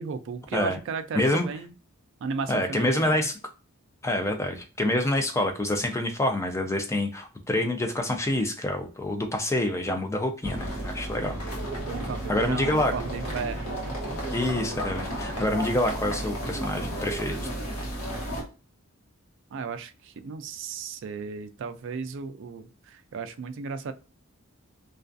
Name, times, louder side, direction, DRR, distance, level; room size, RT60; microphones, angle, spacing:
voice 1, 0.0-1.7 2.2-3.3 11.2-11.5 11.9-13.9 19.5-23.9, right 5 dB, 55° right, 10 dB, 0.3 m, -35 dB
voice 2, 1.1-1.5 2.5-3.3 4.0-11.4 12.3-12.9 14.3-17.4, left 1 dB, 15° left, 5 dB, 0.4 m, -27 dB
sound 1, 10.4-18.4, right 1 dB, 80° left, 1.0 m, -33 dB
2.3 x 2.3 x 2.5 m, 0.34 s
head